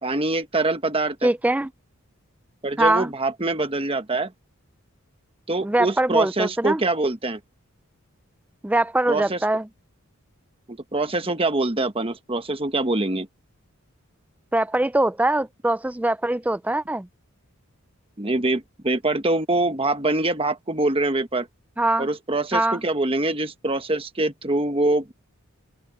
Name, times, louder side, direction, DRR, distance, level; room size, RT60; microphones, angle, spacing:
voice 1, 0.0-1.3 2.6-4.3 5.5-7.4 9.1-9.4 10.7-13.3 18.2-21.5 22.0-25.1, right 2 dB, 25° right, 1.2 m, -24 dB
voice 2, 1.2-1.7 2.8-3.1 5.6-6.8 8.6-9.7 14.5-17.1 21.8-22.1 22.5-22.8, right 1 dB, 5° right, 0.4 m, -22 dB
open air
head